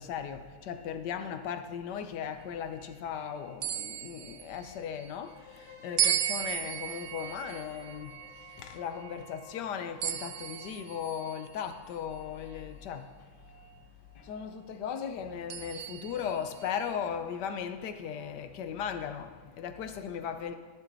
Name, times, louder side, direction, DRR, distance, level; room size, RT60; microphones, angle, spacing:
voice 1, 0.0-13.9 14.1-20.6, left 8 dB, 80° left, 1.4 m, -37 dB
sound 1, 3.6-5.1 6.0-9.4 10.0-11.7 12.5-12.6 15.5-17.0, right 10 dB, 70° right, 0.7 m, -35 dB
sound 2, 5.3-13.1, left 7 dB, 15° right, 2.6 m, -54 dB
13.0 x 11.5 x 4.1 m
omnidirectional pair, 1.8 m